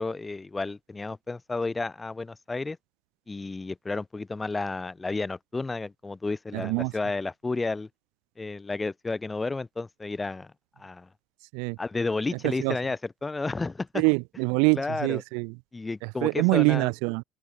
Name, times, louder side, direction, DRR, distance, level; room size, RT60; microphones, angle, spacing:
voice 1, 0.0-2.8 3.3-7.9 8.4-10.5 10.8-11.1 11.8-14.0 14.7-15.2 15.7-16.9, left 3 dB, 20° left, 2.7 m, -32 dB
voice 2, 6.5-6.9 11.5-11.8 12.4-12.8 13.9-15.5 16.0-17.2, right 36 dB, 75° right, 0.6 m, -25 dB
open air
hypercardioid pair, 65°, 0 cm